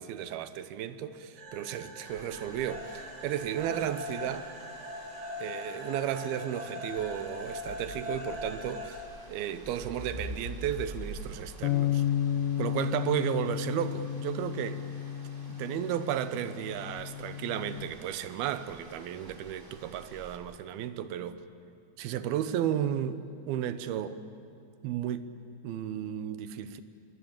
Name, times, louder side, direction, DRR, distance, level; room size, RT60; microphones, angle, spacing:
voice 1, 0.0-4.5 5.4-9.0 9.3-12.0 12.6-14.8 15.5-21.4 22.0-24.2 24.8-25.3 25.6-26.8, right 10 dB, 85° right, 2.9 m, -34 dB
sound 1, 1.4-9.0, left 2 dB, 50° right, 4.5 m, -41 dB
sound 2, 2.0-20.4, right 1 dB, 15° right, 2.5 m, -48 dB
sound 3, 11.6-17.9, left 11 dB, 80° left, 2.6 m, -32 dB
26.5 x 22.0 x 8.8 m
omnidirectional pair, 4.3 m